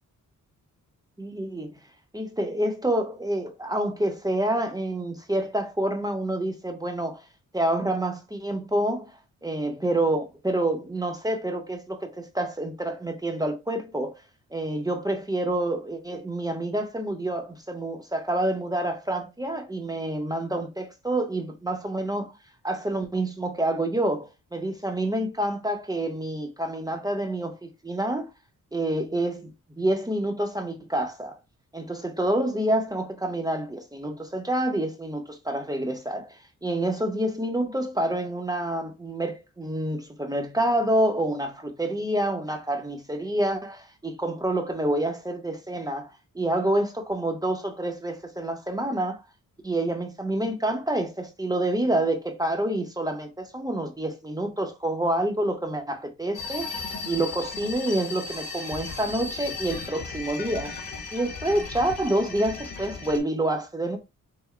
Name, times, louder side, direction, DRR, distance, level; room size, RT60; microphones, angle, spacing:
voice 1, 1.2-1.7 2.1-7.2 7.5-9.1 9.4-14.1 14.5-22.3 22.6-28.3 28.7-29.5 29.8-31.4 31.7-49.2 49.6-56.7 57.1-60.7 61.1-64.0, right 1 dB, 10° right, 0.7 m, -28 dB
sound 1, 56.3-63.2, left 4 dB, 85° left, 1.3 m, -36 dB
5.7 x 2.1 x 3.1 m
wide cardioid pair, 145°, 32 cm